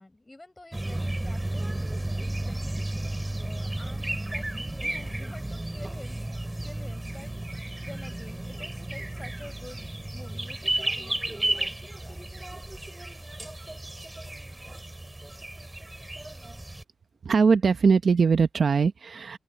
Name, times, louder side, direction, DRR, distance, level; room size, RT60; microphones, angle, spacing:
voice 1, 0.0-1.9 2.2-7.3 7.8-9.8 10.1-12.2, left 2 dB, 15° left, 7.5 m, -48 dB
sound 1, 0.7-16.8, right 1 dB, 15° right, 2.6 m, -33 dB
voice 2, 17.2-19.4, right 5 dB, 50° right, 0.8 m, -21 dB
open air
wide cardioid pair, 150°, 0 cm